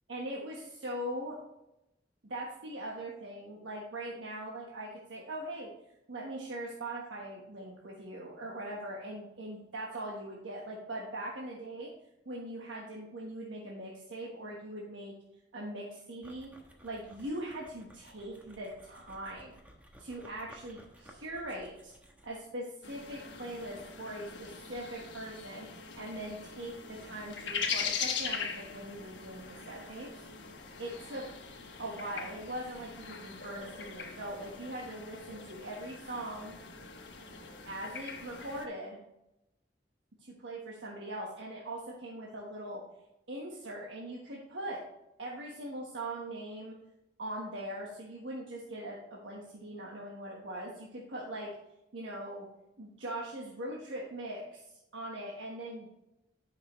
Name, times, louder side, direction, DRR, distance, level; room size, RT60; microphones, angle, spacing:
voice 1, 0.1-1.4 2.2-5.7 6.1-11.9 12.2-15.1 15.5-16.5 16.8-19.6 20.0-21.9 22.2-30.3 30.8-31.2 31.8-36.5 37.7-39.0 40.2-42.8 43.3-44.8 45.2-46.8 47.2-51.5 51.9-52.5 52.8-56.1, right 1 dB, 90° right, -3 dB, 1.3 m, -41 dB
sound 1, 16.2-22.6, equal, 10° right, 1.1 m, -57 dB
sound 2, 22.8-38.7, left 6 dB, 70° left, 1.2 m, -41 dB
10.5 x 5.9 x 3.1 m, 0.89 s
head